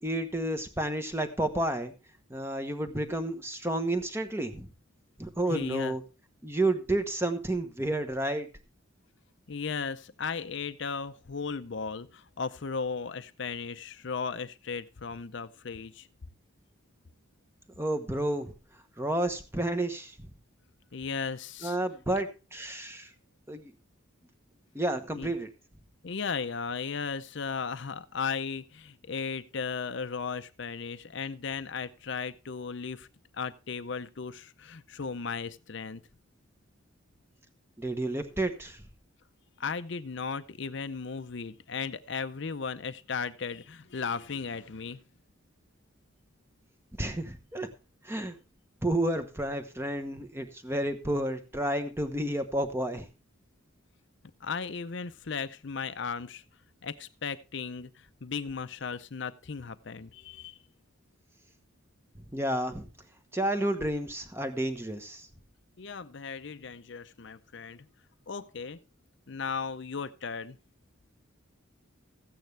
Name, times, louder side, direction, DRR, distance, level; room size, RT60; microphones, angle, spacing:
voice 1, 0.0-1.9 2.3-4.7 5.2-6.0 6.4-8.5 17.8-18.5 19.0-20.3 21.6-23.1 23.5-23.7 24.7-25.5 37.8-38.8 47.0-47.7 48.0-48.3 48.8-53.1 62.3-62.9 63.3-65.3, right 1 dB, 10° right, 1.0 m, -31 dB
voice 2, 5.5-5.9 9.5-16.1 20.9-21.8 25.2-25.3 26.0-33.1 33.3-36.0 39.6-45.0 54.4-56.4 56.8-60.6 65.8-67.9 68.3-68.8 69.3-70.6, left 5 dB, 60° left, 0.6 m, -36 dB
14.5 x 9.1 x 3.3 m
head